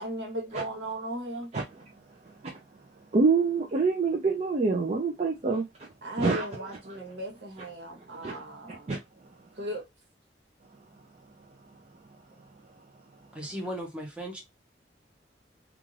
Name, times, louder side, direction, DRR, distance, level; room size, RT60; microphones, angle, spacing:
voice 1, 0.0-1.5 6.0-8.9 9.6-9.9, right 1 dB, 85° right, 1.1 m, -37 dB
voice 2, 1.5-1.8 2.2-2.6 3.1-5.9 6.2-6.4 8.0-9.0, right 4 dB, 40° right, 0.4 m, -27 dB
voice 3, 13.3-14.4, equal, 5° right, 0.8 m, -36 dB
2.5 x 2.4 x 3.1 m
head